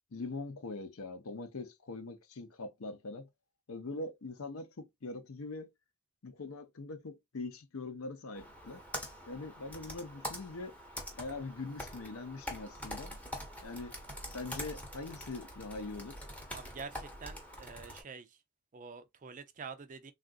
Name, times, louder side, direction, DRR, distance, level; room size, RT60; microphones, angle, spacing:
voice 1, 0.1-3.3 3.7-5.7 6.2-8.8 9.3-10.7 11.2-13.1 13.6-14.0 14.3-16.3, left 3 dB, 65° left, 0.6 m, -42 dB
Computer keyboard, 8.3-18.0, equal, 5° left, 0.7 m, -45 dB
voice 2, 16.5-18.4 18.7-20.1, right 5 dB, 35° right, 0.4 m, -47 dB
3.5 x 2.5 x 2.4 m
head